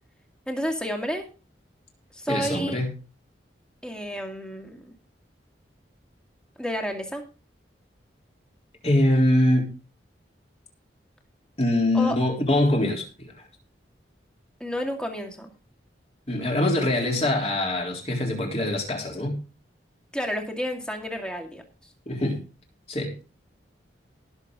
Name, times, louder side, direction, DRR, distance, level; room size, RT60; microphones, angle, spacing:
voice 1, 0.5-1.3 2.1-2.8 3.8-4.9 6.6-7.2 11.9-12.2 14.6-15.5 20.1-21.6, equal, 5° left, 2 dB, 2.2 m, -30 dB
voice 2, 2.3-2.9 8.8-9.8 11.6-13.5 16.3-19.4 22.1-22.4 22.9-23.2, left 1 dB, 35° left, 0 dB, 3.7 m, -23 dB
19.0 x 7.0 x 3.9 m, 0.34 s
head